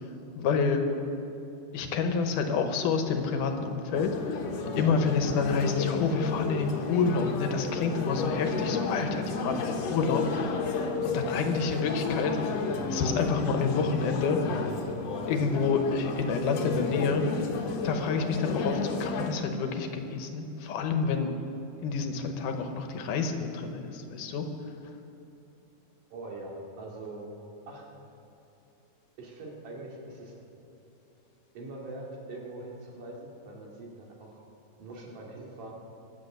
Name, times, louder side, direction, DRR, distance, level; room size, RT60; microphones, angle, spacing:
voice 1, 0.4-0.8 1.7-12.6 12.9-14.4 15.3-17.5 17.8-21.3 21.8-24.5, left 5 dB, 80° left, 5 dB, 2.6 m, -28 dB
sound 1, 3.9-19.3, left 4 dB, 60° left, 2.1 m, -32 dB
voice 2, 26.1-27.4 27.7-27.9 29.2-30.3 31.5-34.4 34.8-35.7, right 2 dB, 75° right, -2 dB, 3.9 m, -42 dB
24.0 x 8.3 x 6.7 m, 2.8 s
omnidirectional pair, 3.7 m